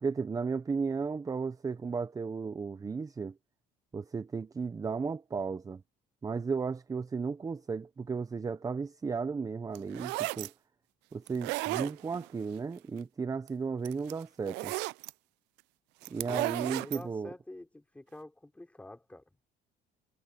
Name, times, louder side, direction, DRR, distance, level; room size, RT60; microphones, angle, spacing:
voice 1, 0.0-3.3 3.9-5.8 6.2-10.5 11.1-14.7 16.1-17.3, right 5 dB, 20° right, 0.8 m, -34 dB
sound 1, 9.8-10.5 11.3-12.3 13.5-13.6 13.8-15.1 16.0-17.0, right 22 dB, 80° right, 0.5 m, -34 dB
voice 2, 16.3-19.2, left 1 dB, 10° left, 4.4 m, -48 dB
cardioid pair, 120°, 18 cm